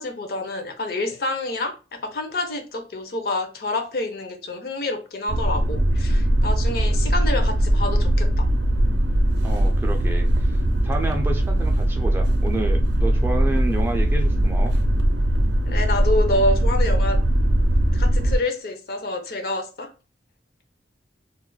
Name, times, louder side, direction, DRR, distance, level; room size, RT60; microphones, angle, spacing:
voice 1, 0.0-8.5 15.7-17.2 17.9-19.9, left 2 dB, 55° left, 0.5 m, -27 dB
sound 1, 5.3-18.4, right 1 dB, 70° right, 0.5 m, -20 dB
voice 2, 9.4-10.5 10.8-14.7, right 2 dB, 10° right, 0.3 m, -29 dB
2.3 x 2.1 x 3.8 m
head